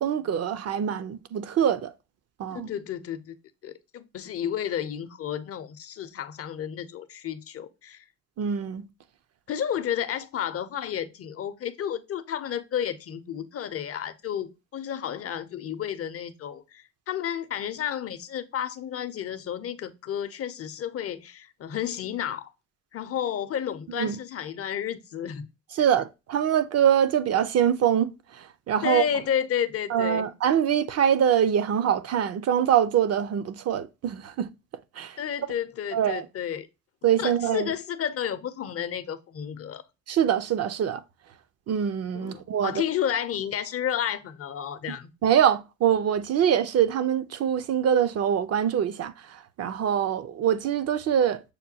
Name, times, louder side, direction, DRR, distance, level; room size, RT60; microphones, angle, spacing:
voice 1, 0.0-1.9 2.4-2.7 8.4-8.9 23.9-24.2 25.8-29.0 29.9-34.5 35.0-35.2 35.9-36.3 37.0-37.7 40.1-41.0 41.7-42.8 45.2-51.4, right 9 dB, 55° right, 0.5 m, -24 dB
voice 2, 2.5-3.4 3.6-8.0 9.5-22.5 22.9-25.5 28.8-30.3 35.2-36.7 37.2-39.8 42.1-45.1, left 9 dB, 50° left, 0.6 m, -31 dB
6.5 x 2.2 x 2.7 m
cardioid pair, 90°, 30 cm